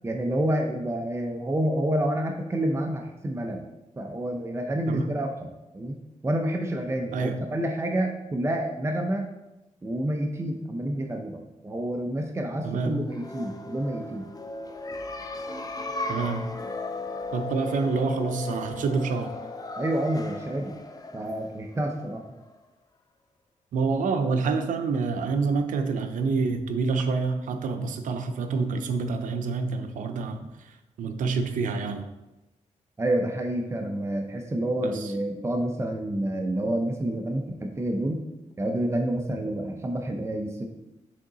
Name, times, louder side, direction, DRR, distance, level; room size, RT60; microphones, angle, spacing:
voice 1, 0.0-3.7 4.0-5.3 5.7-6.0 6.2-9.3 9.8-14.3 19.8-20.7 21.1-22.2 33.0-38.2 38.6-40.7, right 1 dB, 20° right, 3 dB, 0.6 m, -28 dB
voice 2, 12.6-13.0 16.1-16.5 17.3-19.3 23.7-32.1 34.8-35.1, right 4 dB, 85° right, 7 dB, 0.6 m, -27 dB
sound 1, 13.0-22.5, left 2 dB, 30° left, 0.6 m, -36 dB
6.5 x 3.7 x 4.0 m, 0.97 s
cardioid pair, 85°, 13 cm